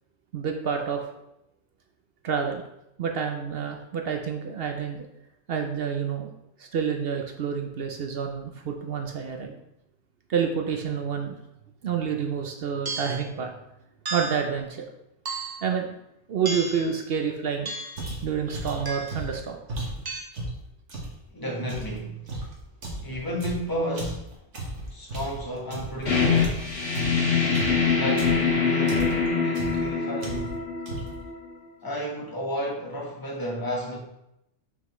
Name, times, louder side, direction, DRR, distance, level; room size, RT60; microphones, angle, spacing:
voice 1, 0.3-1.0 2.2-2.6 3.0-5.1 5.5-6.3 6.6-9.5 10.3-11.3 11.8-13.5 14.1-14.9 15.6-15.9 16.3-17.7 18.0-19.6, right 7 dB, 60° right, 3 dB, 0.8 m, -28 dB
sound 1, 12.9-13.3 14.1-14.5 15.3-15.7 16.5-16.9 17.7-18.1 18.9-19.3 20.1-20.2, right 2 dB, 25° right, 0.5 m, -33 dB
sound 2, 18.0-21.2 21.7-26.1 26.3-28.5 28.9-29.3 29.5-29.9 30.2-30.6 30.9-31.3, right 2 dB, 80° right, 1.7 m, -35 dB
voice 2, 21.3-22.4 23.0-24.3 24.9-26.5 27.9-30.6 31.8-34.0, equal, 20° left, -2 dB, 1.2 m, -32 dB
sound 3, 26.1-31.5, left 5 dB, 60° left, 2.6 m, -24 dB
5.9 x 5.6 x 3.1 m, 0.84 s
omnidirectional pair, 1.2 m